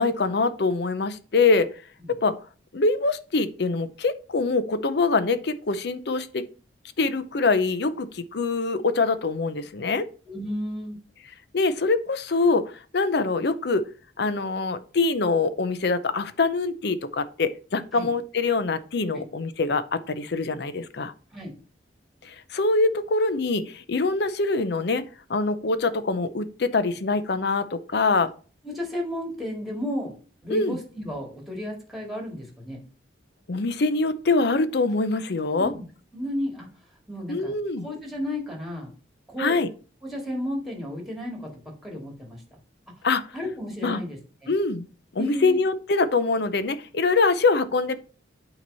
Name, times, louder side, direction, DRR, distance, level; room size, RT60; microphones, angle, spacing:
voice 1, 0.0-1.7 2.2-2.4 2.7-6.4 7.0-10.0 11.5-13.8 14.2-21.1 22.2-25.0 25.3-28.3 30.5-30.8 33.5-35.7 37.3-37.9 39.4-39.7 43.0-43.2 43.8-44.0 44.5-44.9 45.1-48.0, left 3 dB, 60° left, 12 dB, 0.6 m, -24 dB
voice 2, 10.3-11.0 17.9-18.1 19.1-19.2 21.3-21.5 28.6-30.1 30.4-32.8 35.5-35.8 36.1-36.7 37.1-37.6 37.8-38.9 39.3-39.6 40.0-42.4 43.3-44.5 45.2-45.6, equal, ahead, -1 dB, 2.0 m, -33 dB
8.9 x 3.0 x 5.4 m, 0.38 s
head